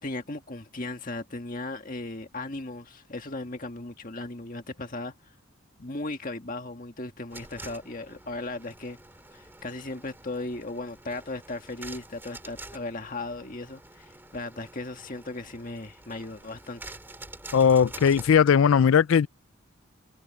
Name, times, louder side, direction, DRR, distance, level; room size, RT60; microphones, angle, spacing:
voice 1, 0.0-5.1 5.8-9.0 9.3-16.9, left 2 dB, 40° left, 1.7 m, -37 dB
sound 1, 7.3-18.4, right 2 dB, 10° right, 2.2 m, -47 dB
voice 2, 17.5-19.3, left 7 dB, 70° left, 0.4 m, -19 dB
head